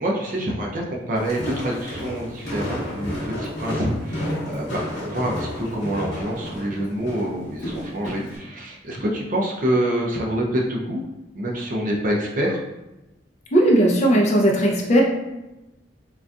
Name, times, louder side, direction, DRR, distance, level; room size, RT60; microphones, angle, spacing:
voice 1, 0.0-11.0 11.3-12.6, right 1 dB, 45° right, -1 dB, 0.5 m, -26 dB
Walk footsteps, 1.1-8.4, left 1 dB, 65° left, 1.0 m, -31 dB
voice 2, 13.5-15.0, right 1 dB, 40° left, -1 dB, 0.6 m, -17 dB
3.7 x 2.5 x 2.3 m, 0.98 s
head